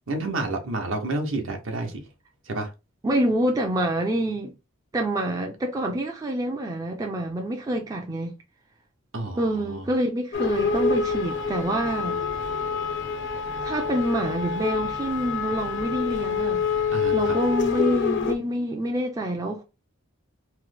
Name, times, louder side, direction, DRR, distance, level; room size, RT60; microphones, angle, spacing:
voice 1, 0.1-2.0 2.5-2.7 9.1-9.8 16.9-17.4, right 2 dB, 65° right, 0.8 m, -30 dB
voice 2, 3.0-4.5 4.9-8.3 9.3-12.2 13.6-16.7 17.1-19.6, right 1 dB, 15° right, 0.3 m, -26 dB
sound 1, 10.3-18.3, left 5 dB, 55° left, 0.5 m, -27 dB
3.1 x 2.1 x 3.2 m
head